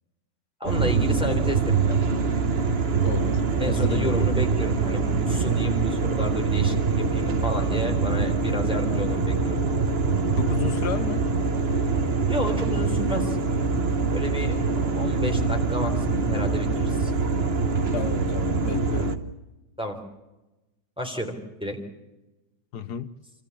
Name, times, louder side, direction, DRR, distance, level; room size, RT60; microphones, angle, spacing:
voice 1, 0.6-2.0 3.6-9.6 12.3-13.4 14.1-14.6 14.9-17.1 19.8-20.0 21.0-21.3 21.6-21.8, equal, 5° right, 3.5 m, -31 dB
sound 1, 0.6-19.2, right 4 dB, 40° right, 1.1 m, -24 dB
voice 2, 3.0-3.4 3.7-4.2 10.4-11.2 17.9-19.2 22.7-23.1, left 8 dB, 65° left, 1.4 m, -32 dB
26.5 x 14.5 x 8.4 m
omnidirectional pair, 2.0 m